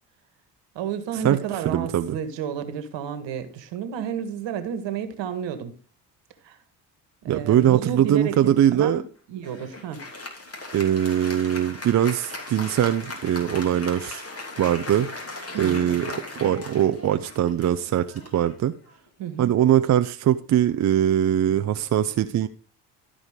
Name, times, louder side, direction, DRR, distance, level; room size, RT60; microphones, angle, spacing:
voice 1, 0.7-5.7 6.4-6.6 7.2-9.0 9.3-10.0 15.5-16.2 19.2-19.5, right 8 dB, 65° right, 1.6 m, -31 dB
voice 2, 1.6-2.2 7.3-9.0 10.7-14.3 14.6-15.1 15.6-18.7 19.4-22.5, right 11 dB, 35° right, 0.6 m, -22 dB
Applause, 9.4-19.2, left 2 dB, 30° left, 2.9 m, -38 dB
13.0 x 5.0 x 5.0 m
hypercardioid pair, 60°, 47 cm